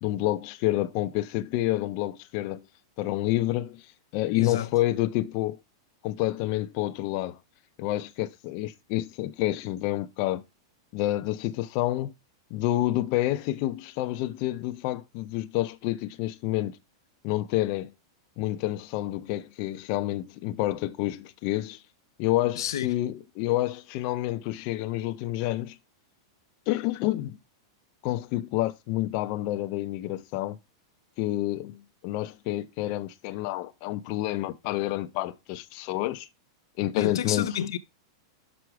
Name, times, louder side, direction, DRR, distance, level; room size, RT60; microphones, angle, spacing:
voice 1, 0.0-2.6 3.0-3.8 4.1-5.6 6.0-7.4 7.8-10.4 10.9-12.1 12.5-16.8 17.2-17.9 18.4-21.8 22.2-25.8 26.7-27.4 28.0-30.6 31.2-36.3 36.8-37.6, left 15 dB, 40° left, 0.6 m, -28 dB
voice 2, 4.3-4.7 22.6-22.9 37.0-37.8, left 10 dB, 85° left, 0.6 m, -29 dB
6.3 x 6.0 x 4.6 m
supercardioid pair, 160°, 2 cm